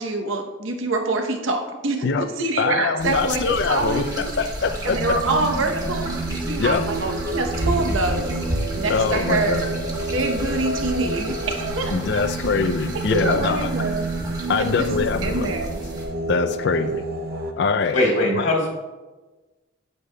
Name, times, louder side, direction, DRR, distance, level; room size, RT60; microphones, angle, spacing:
voice 1, 0.0-4.3 4.8-6.1 6.5-8.4 8.7-9.7 10.1-12.2 13.1-14.1 14.6-15.7 18.2-18.4, right 2 dB, 75° right, 4 dB, 0.9 m, -25 dB
voice 2, 2.6-5.2 6.6-6.8 8.9-9.6 11.9-13.7 14.5-15.6 16.3-17.0 17.6-18.0 18.3-18.5, left 4 dB, 55° left, 10 dB, 0.4 m, -23 dB
sound 1, 3.0-16.1, equal, 20° right, 1.1 m, -31 dB
Singing, 4.9-17.5, right 3 dB, 50° right, 0.6 m, -30 dB
voice 3, 17.9-18.7, left 1 dB, 70° left, -3 dB, 1.9 m, -20 dB
8.4 x 8.2 x 2.2 m, 1.2 s
head